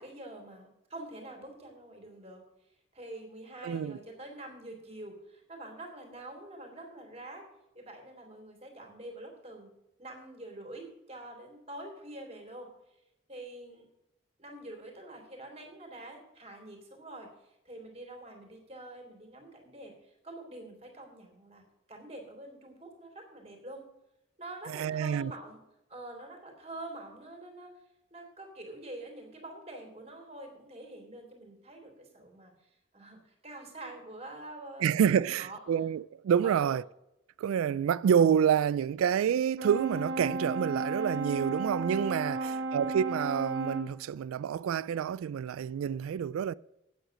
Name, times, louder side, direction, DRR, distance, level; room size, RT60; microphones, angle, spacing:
voice 1, 0.0-2.4 2.9-7.4 7.7-9.7 10.0-12.7 13.3-13.9 14.4-23.8 24.4-25.6 25.9-27.7 28.1-32.5 32.9-35.6 36.4-36.8 42.1-42.7, right 1 dB, 30° right, 3.1 m, -46 dB
voice 2, 3.6-4.0 24.7-25.3 34.8-36.8 37.4-46.5, right 8 dB, 90° right, 0.3 m, -28 dB
Brass instrument, 39.6-44.0, right 2 dB, 65° right, 0.9 m, -34 dB
9.0 x 8.0 x 6.2 m
head